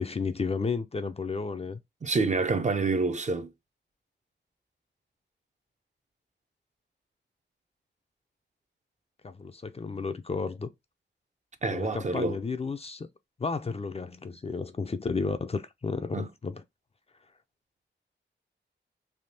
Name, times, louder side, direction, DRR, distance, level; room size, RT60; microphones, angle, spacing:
voice 1, 0.0-1.8 9.2-10.7 11.7-13.1 13.4-16.6, left 4 dB, 30° left, 0.4 m, -32 dB
voice 2, 2.0-3.5 11.6-12.4 16.1-16.3, right 3 dB, 35° right, 0.5 m, -27 dB
3.4 x 2.7 x 2.6 m
wide cardioid pair, 95°, 20 cm